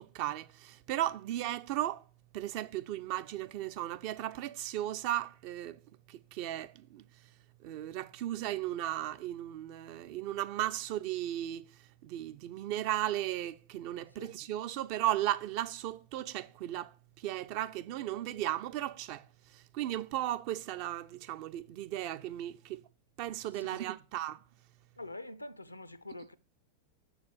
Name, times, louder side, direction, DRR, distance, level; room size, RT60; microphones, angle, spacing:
voice 1, 0.0-2.0 2.3-5.8 6.1-7.0 7.6-11.6 12.0-16.9 17.2-19.2 19.5-22.8 23.2-24.4, right 13 dB, 45° right, 0.4 m, -36 dB
voice 2, 23.5-23.9 25.0-26.3, left 2 dB, 85° left, 0.5 m, -45 dB
6.6 x 4.7 x 6.6 m
figure-of-eight pair, 90°, 0 cm